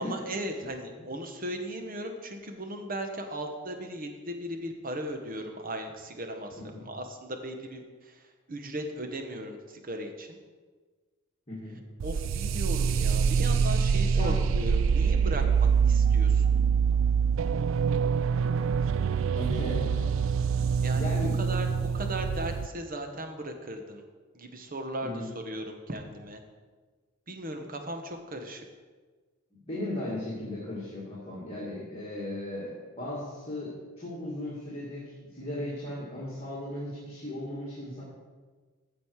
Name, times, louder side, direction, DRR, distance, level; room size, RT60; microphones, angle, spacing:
voice 1, 0.0-10.4 12.0-16.5 20.8-21.1 21.4-24.0 24.3-26.4 27.3-28.6, right 1 dB, 40° right, 5 dB, 1.0 m, -37 dB
voice 2, 11.5-11.8 14.2-14.3 19.3-20.2 20.9-21.4 25.0-25.3 29.6-38.0, left 1 dB, 30° left, -7 dB, 2.1 m, -36 dB
sound 1, 12.0-22.7, right 6 dB, 65° right, 0.3 m, -25 dB
14.5 x 5.3 x 4.7 m, 1.4 s
head